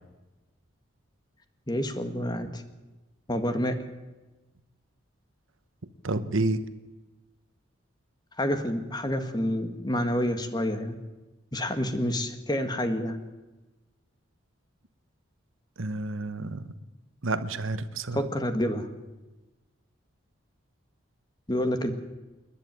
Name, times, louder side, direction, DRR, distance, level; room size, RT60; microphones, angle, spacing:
voice 1, 1.7-2.6 3.3-3.8 8.4-11.0 11.5-13.2 18.1-18.9 21.5-21.9, equal, 20° left, 8 dB, 1.6 m, -28 dB
voice 2, 6.0-6.6 15.8-16.6 17.2-18.2, right 2 dB, 75° right, 12 dB, 1.1 m, -29 dB
28.5 x 10.5 x 9.4 m, 1.1 s
head